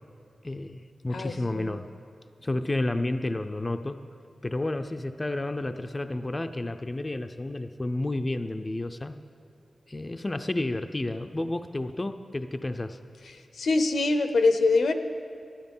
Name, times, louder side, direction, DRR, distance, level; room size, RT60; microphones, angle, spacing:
voice 1, 0.4-1.9 2.4-4.0 4.4-9.1 9.9-13.0, left 2 dB, 20° left, 8 dB, 0.4 m, -31 dB
voice 2, 1.1-1.8 13.5-14.9, left 3 dB, 85° left, 9 dB, 0.8 m, -24 dB
12.5 x 12.5 x 5.4 m, 2.6 s
wide cardioid pair, 150°, 0 cm